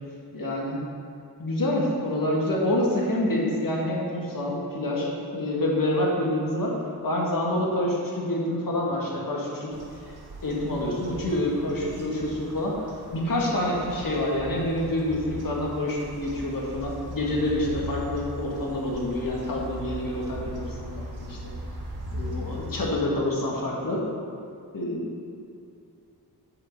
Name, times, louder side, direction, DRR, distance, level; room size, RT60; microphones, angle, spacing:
voice 1, 0.3-0.8 1.4-6.8 7.0-9.7 10.4-12.7 13.1-21.5 22.1-24.0 24.7-25.0, left 1 dB, 55° left, -3 dB, 2.0 m, -27 dB
sound 1, 9.7-22.9, equal, 70° right, 1.5 m, -39 dB
7.7 x 5.7 x 5.4 m, 2.5 s
cardioid pair, 65°, 40 cm